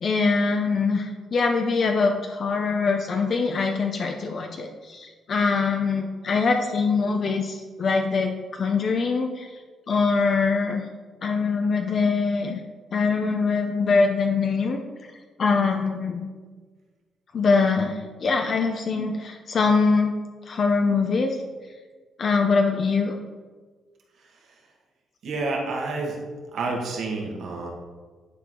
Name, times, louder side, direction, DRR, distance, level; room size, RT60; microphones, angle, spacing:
voice 1, 0.0-9.5 9.9-10.8 11.2-12.6 12.9-14.8 15.4-16.2 17.3-20.1 20.5-21.3 22.2-23.2, left 4 dB, 50° left, 3 dB, 0.7 m, -23 dB
voice 2, 24.2-24.6 25.2-26.2 26.5-27.7, right 3 dB, 70° right, 0 dB, 1.8 m, -29 dB
10.5 x 4.7 x 3.8 m, 1.4 s
cardioid pair, 90°, 0 cm